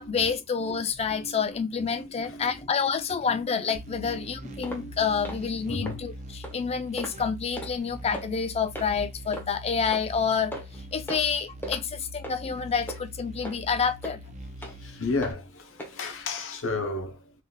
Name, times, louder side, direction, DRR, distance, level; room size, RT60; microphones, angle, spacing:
voice 1, 0.0-10.5 10.9-14.2, left 6 dB, 30° left, 0.4 m, -28 dB
voice 2, 1.1-5.3 5.7-6.3 14.4-17.3, left 3 dB, 60° left, 0.7 m, -36 dB
sound 1, 3.7-15.3, equal, 35° right, 0.6 m, -43 dB
sound 2, 4.6-4.8 5.2-5.4 5.9-6.0 6.4-6.6 7.0-7.2 7.6-7.7 8.1-8.3 8.8-8.9 9.3-9.5 9.9-10.0 10.5-10.8 11.1-11.3 11.6-11.8 12.2-12.4 12.9-13.0 13.4-13.6 14.0-14.2 14.6-14.8 15.2-15.4 15.8-15.9 16.4-16.5, equal, 10° left, 0.8 m, -37 dB
3.7 x 2.5 x 2.2 m
head